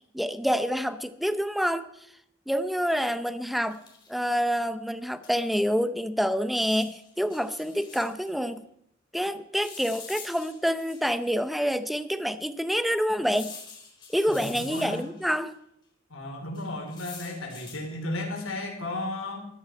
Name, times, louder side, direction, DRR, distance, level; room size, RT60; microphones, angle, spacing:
voice 1, 0.1-1.9 2.5-3.8 4.1-8.7 9.1-13.6 14.1-15.5, equal, ahead, 12 dB, 0.6 m, -27 dB
sound 1, 3.6-4.2 5.2-5.3 5.6-5.7 6.5-8.3 9.6-11.3 11.9-12.0 13.3-15.3 16.5-17.9 18.4-18.7, left 5 dB, 20° left, 4.0 m, -46 dB
voice 2, 14.3-15.0 16.1-19.5, left 2 dB, 85° left, 1 dB, 3.8 m, -34 dB
15.0 x 13.5 x 4.5 m, 0.73 s
head